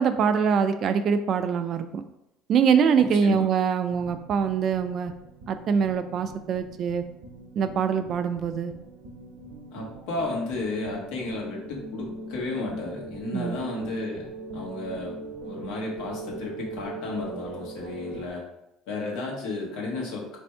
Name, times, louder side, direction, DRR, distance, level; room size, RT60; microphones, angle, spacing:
voice 1, 0.0-2.0 2.5-5.1 5.5-7.0 7.6-8.7 13.3-13.6, right 6 dB, 50° right, 9 dB, 0.3 m, -24 dB
voice 2, 3.0-3.5 9.7-15.2 15.4-18.4 18.9-20.4, left 2 dB, 80° left, -1 dB, 1.1 m, -33 dB
sound 1, 3.9-18.3, right 2 dB, 65° right, 0.7 m, -41 dB
3.4 x 2.6 x 4.3 m, 0.85 s
cardioid pair, 115°, 0 cm